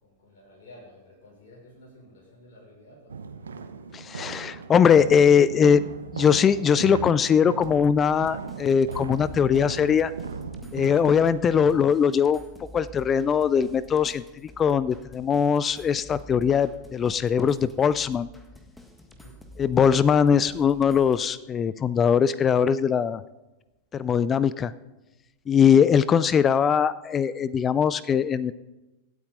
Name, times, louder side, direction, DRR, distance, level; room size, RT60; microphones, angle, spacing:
voice 1, 0.0-3.2 19.1-19.4, left 1 dB, 50° left, -3 dB, 5.9 m, -51 dB
sound 1, 3.1-11.9, right 5 dB, 70° right, 0.9 m, -37 dB
voice 2, 3.9-5.9 6.1-10.1 10.7-12.4 12.7-14.2 14.6-18.3 19.6-23.2 23.9-24.7 25.5-28.5, left 7 dB, 25° left, 18 dB, 0.4 m, -21 dB
sound 2, 7.6-21.3, right 1 dB, 5° left, 1.7 m, -48 dB
25.0 x 8.6 x 3.9 m, 1.1 s
figure-of-eight pair, 90°, 0 cm